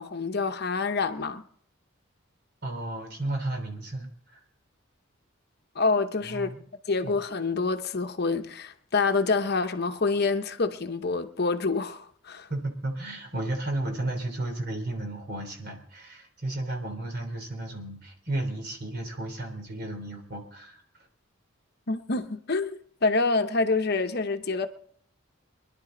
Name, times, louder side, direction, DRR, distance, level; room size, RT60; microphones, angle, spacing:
voice 1, 0.0-1.4 5.8-6.5 6.9-12.5 21.9-24.7, left 3 dB, 55° left, 0.9 m, -27 dB
voice 2, 2.6-4.4 6.2-6.6 7.0-7.1 12.5-20.8, right 2 dB, 55° right, 3.4 m, -33 dB
25.0 x 11.0 x 3.9 m
head